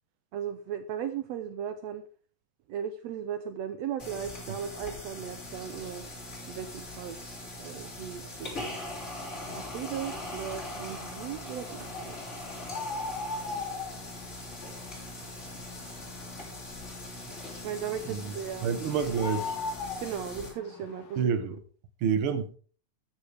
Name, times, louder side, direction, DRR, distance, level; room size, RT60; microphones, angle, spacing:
voice 1, 0.3-2.0 2.7-6.0 6.5-7.2 7.6-8.5 9.5-12.1 17.5-18.7 20.0-21.3, right 8 dB, 80° right, 1.5 m, -37 dB
sound 1, 4.0-20.5, left 1 dB, 20° left, 3.8 m, -41 dB
sound 2, 9.5-21.2, left 4 dB, 65° left, 1.4 m, -41 dB
voice 2, 18.6-19.6 21.2-21.6 22.0-22.5, right 6 dB, 60° right, 1.5 m, -28 dB
13.0 x 9.7 x 3.4 m
omnidirectional pair, 3.9 m